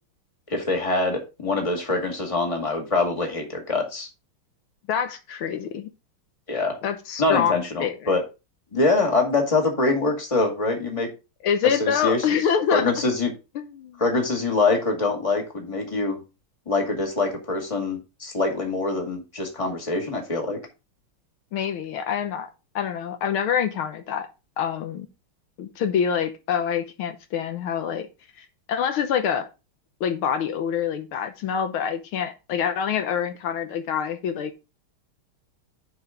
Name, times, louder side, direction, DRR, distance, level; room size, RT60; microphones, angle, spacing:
voice 1, 0.5-4.1 6.5-6.8 7.2-8.2 8.7-11.1 11.8-12.2 12.7-13.3 14.0-16.2 16.7-20.6, left 3 dB, 15° left, 1 dB, 2.0 m, -24 dB
voice 2, 4.9-5.9 6.8-8.1 11.4-13.1 13.6-14.0 21.5-22.5 22.8-24.3 24.6-25.1 25.6-28.1 28.4-29.5 30.0-34.6, left 8 dB, 80° left, 7 dB, 1.7 m, -26 dB
10.5 x 4.7 x 3.8 m, 0.28 s
omnidirectional pair, 2.4 m